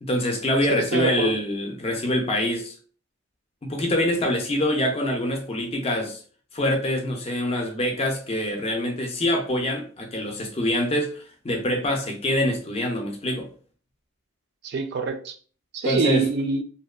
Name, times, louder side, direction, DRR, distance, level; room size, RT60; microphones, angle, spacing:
voice 1, 0.0-2.7 3.6-6.2 6.5-13.5 15.8-16.3, left 1 dB, 25° left, 0.4 m, -25 dB
voice 2, 0.7-1.3 14.6-15.3 15.7-16.6, right 4 dB, 50° right, 0.3 m, -25 dB
2.7 x 2.2 x 2.3 m
head